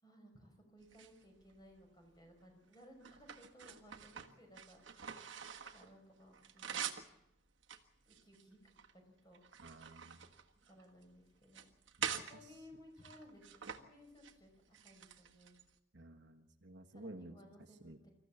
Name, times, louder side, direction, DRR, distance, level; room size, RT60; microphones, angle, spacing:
voice 1, 0.0-5.3 5.7-6.9 8.1-9.6 10.6-11.7 12.1-15.6 16.9-18.1, equal, 20° left, 3 dB, 5.5 m, -60 dB
sound 1, 0.8-1.8 2.4-5.9 6.2-7.1 7.6-8.9 9.3-11.0 11.4-12.3 13.0-13.8 14.1-14.3 14.7-15.7, right 8 dB, 75° right, 1.6 m, -46 dB
voice 2, 9.6-10.2 12.0-12.6 15.9-17.4 17.8-18.0, right 1 dB, 60° right, 3 dB, 1.6 m, -53 dB
26.5 x 14.5 x 7.3 m, 0.86 s
head